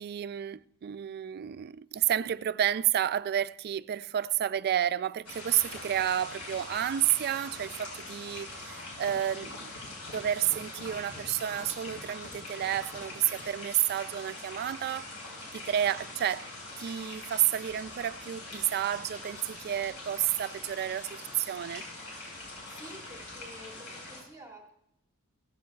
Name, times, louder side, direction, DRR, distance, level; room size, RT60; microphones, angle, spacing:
voice 1, 0.0-9.7 10.1-15.1 15.5-16.5 16.8-21.9, right 11 dB, 45° right, 0.3 m, -30 dB
sound 1, 5.2-24.2, left 2 dB, 85° left, 5.7 m, -43 dB
sound 2, 8.9-13.6, left 1 dB, 40° left, 3.7 m, -49 dB
voice 2, 22.7-24.7, right 1 dB, 15° right, 1.8 m, -49 dB
16.5 x 15.5 x 2.3 m
head